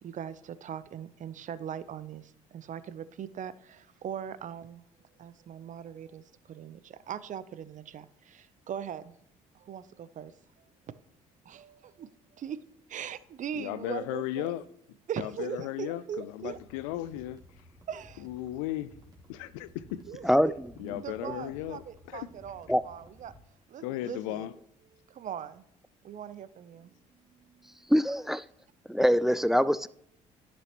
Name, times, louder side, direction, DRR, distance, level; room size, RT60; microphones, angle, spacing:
voice 1, 0.0-4.8 5.2-9.1 9.5-10.3 11.4-12.6 12.9-14.5 15.1-16.6 17.9-18.2 20.1-20.5 21.0-23.3 23.7-24.5 25.1-25.6 26.0-26.9 27.3-27.8, right 9 dB, 50° right, 0.6 m, -40 dB
voice 2, 13.5-14.6 15.2-17.4 18.2-18.9 19.3-20.1 20.8-22.3 23.8-24.5, left 14 dB, 85° left, 0.5 m, -36 dB
sound 1, 16.4-23.4, equal, 25° right, 2.2 m, -56 dB
voice 3, 20.2-21.3 22.7-22.8 27.9-28.5 28.9-29.9, equal, ahead, 0.4 m, -25 dB
10.5 x 6.1 x 3.0 m
hypercardioid pair, 60°, 17 cm